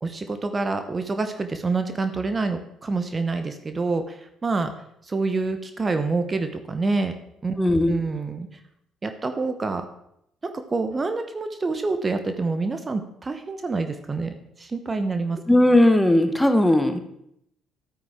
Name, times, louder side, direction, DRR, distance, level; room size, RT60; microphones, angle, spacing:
voice 1, 0.0-4.7 5.0-7.1 7.4-8.6 9.0-9.9 10.4-15.4, right 3 dB, 30° right, 8 dB, 0.9 m, -27 dB
voice 2, 7.6-8.0 15.5-17.0, left 1 dB, 10° left, 7 dB, 1.2 m, -17 dB
12.5 x 9.2 x 3.6 m, 0.75 s
figure-of-eight pair, 50°, 0 cm